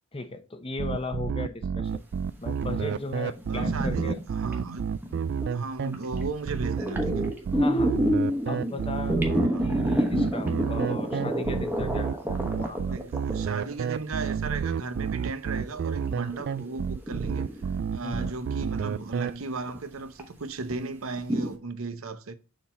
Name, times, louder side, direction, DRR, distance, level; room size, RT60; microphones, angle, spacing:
voice 1, 0.1-2.0 2.4-4.2 7.6-7.9 8.5-12.8 18.0-18.3, left 2 dB, 25° left, 0.8 m, -36 dB
sound 1, 0.8-19.3, right 6 dB, 55° right, 0.3 m, -30 dB
sound 2, 2.5-5.5 5.9-6.2 6.5-14.4 15.0-15.1 15.5-17.9 18.2-18.4 18.9-19.0 19.7-19.8 20.2-20.3 20.6-20.7 21.2-21.5, equal, 10° right, 1.1 m, -29 dB
voice 2, 3.5-4.0 4.3-4.8 5.5-7.3 9.5-9.7 12.9-17.5 17.9-22.4, right 3 dB, 75° right, 0.8 m, -35 dB
6.9 x 3.8 x 4.2 m
head